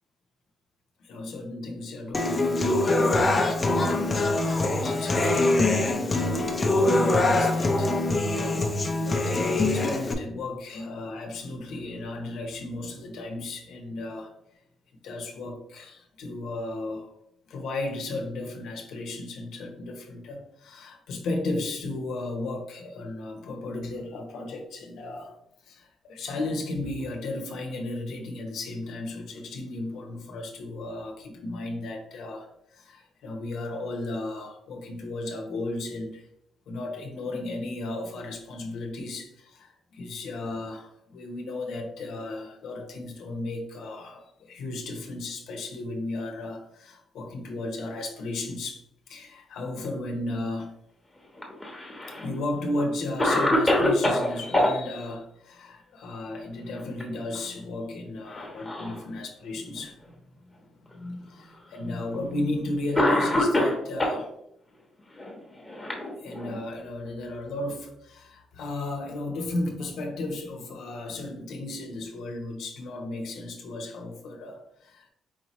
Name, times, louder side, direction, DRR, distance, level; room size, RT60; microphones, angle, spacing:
voice 1, 1.0-7.9 8.3-14.3 15.0-17.1 17.5-25.4 25.6-36.3 36.7-50.7 52.1-60.5 60.8-64.3 66.2-75.1, left 2 dB, 75° left, 3 dB, 0.8 m, -35 dB
Human voice / Acoustic guitar, 2.1-10.1, left 2 dB, 30° left, 0.6 m, -23 dB
Cough, 51.4-52.2 52.8-52.9 53.2-54.7 56.6-57.0 57.3-57.5 58.3-59.0 59.8-59.9 60.9-61.0 62.1-62.3 62.9-64.2 65.2-66.6, left 1 dB, 10° left, 1.1 m, -25 dB
4.6 x 2.9 x 3.0 m, 0.76 s
cardioid pair, 90°, 0 cm